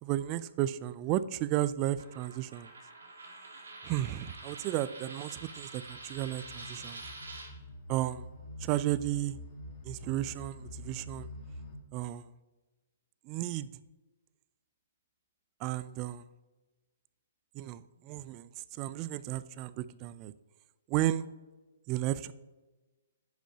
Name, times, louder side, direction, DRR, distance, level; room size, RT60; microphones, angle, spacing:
voice 1, 0.0-2.7 3.8-7.0 7.9-8.3 8.6-9.4 9.8-11.3 11.9-12.3 13.2-13.7 15.6-16.3 17.5-20.3 20.9-21.3 21.9-22.3, right 14 dB, 35° right, 17 dB, 0.3 m, -33 dB
Coin (dropping), 2.0-7.5, right 3 dB, 90° right, 1.9 m, -47 dB
sound 1, 5.5-11.8, left 1 dB, 40° left, 1.6 m, -47 dB
9.9 x 6.2 x 2.8 m, 1.2 s
hypercardioid pair, 135°, 0 cm